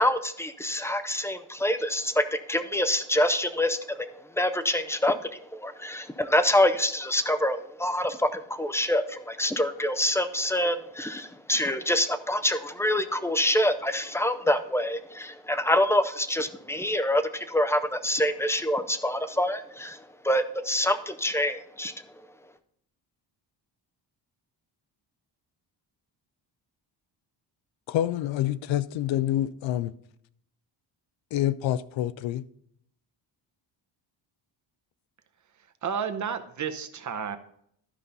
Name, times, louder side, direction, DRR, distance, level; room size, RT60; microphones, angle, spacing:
voice 1, 0.0-21.9, left 1 dB, 5° left, 0.4 m, -26 dB
voice 2, 27.9-29.9 31.3-32.4, left 12 dB, 80° left, 0.6 m, -27 dB
voice 3, 35.8-37.4, right 7 dB, 40° right, 0.8 m, -31 dB
12.5 x 5.4 x 3.9 m
cardioid pair, 125°, 45 cm